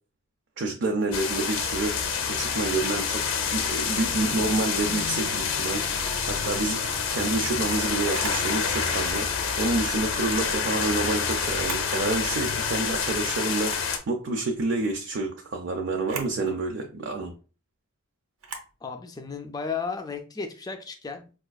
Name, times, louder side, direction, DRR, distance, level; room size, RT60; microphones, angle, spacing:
voice 1, 0.6-3.2 3.5-17.3, right 3 dB, 55° right, 0.4 m, -29 dB
sound 1, 1.1-14.0, left 6 dB, 65° left, 0.5 m, -27 dB
Camera, 8.1-8.5 10.2-10.5 11.5-11.9 12.4-12.5 13.6-13.9 16.0-16.4 18.4-18.7, right 4 dB, 80° right, 0.8 m, -38 dB
voice 2, 18.8-21.4, left 5 dB, 20° left, 0.4 m, -34 dB
4.8 x 2.4 x 2.3 m
head